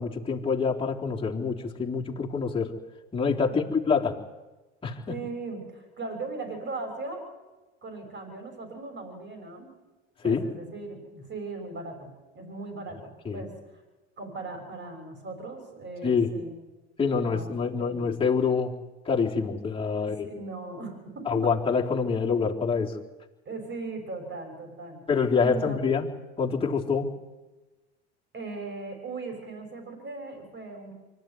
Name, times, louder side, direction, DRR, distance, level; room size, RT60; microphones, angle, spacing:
voice 1, 0.0-2.7 3.1-4.1 4.8-5.0 10.2-10.4 13.3-13.5 16.0-16.3 17.0-18.8 19.1-20.3 21.3-23.0 25.1-26.1 26.4-27.1, left 5 dB, 15° left, -3 dB, 3.7 m, -26 dB
voice 2, 3.5-3.8 5.1-7.3 7.8-9.8 10.2-13.8 14.2-16.6 17.2-18.1 20.0-21.5 23.5-25.1 25.4-25.8 28.3-30.9, right 3 dB, 35° right, 5 dB, 6.9 m, -38 dB
24.5 x 14.0 x 9.5 m, 1.1 s
hypercardioid pair, 85°, 33 cm